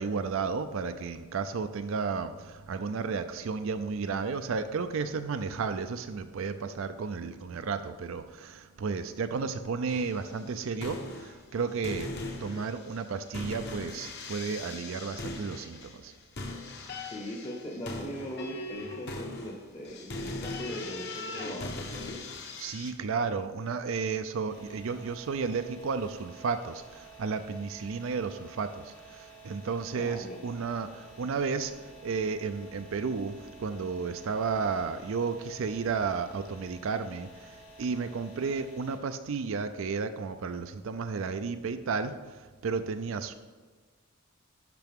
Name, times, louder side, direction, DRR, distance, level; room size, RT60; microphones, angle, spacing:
voice 1, 0.0-12.1 12.4-16.1 22.6-31.7 32.0-37.3 37.8-42.1 42.6-43.3, right 5 dB, 65° right, 9 dB, 0.4 m, -33 dB
sound 1, 9.9-10.3 10.7-11.6 11.8-22.9, left 2 dB, 50° left, 1.0 m, -39 dB
voice 2, 17.0-22.2 29.9-30.4, equal, 25° left, -2 dB, 0.9 m, -40 dB
sound 2, 24.5-39.0, right 2 dB, 70° left, 2.5 m, -52 dB
12.0 x 5.7 x 3.6 m, 1.4 s
head